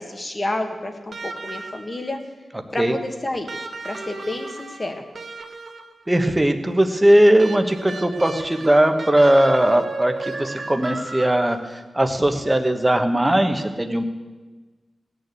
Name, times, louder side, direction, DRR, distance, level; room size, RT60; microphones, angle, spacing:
voice 1, 0.0-2.2 2.7-3.5 3.8-5.0, left 1 dB, 25° left, 5 dB, 1.6 m, -29 dB
sound 1, 1.1-2.1 3.5-6.0 7.4-11.8 13.2-13.3, right 3 dB, 50° right, 1.3 m, -35 dB
voice 2, 6.1-11.6 11.9-14.0, right 1 dB, 10° right, 6 dB, 1.1 m, -18 dB
17.5 x 6.8 x 8.4 m, 1.3 s
wide cardioid pair, 135°, 0 cm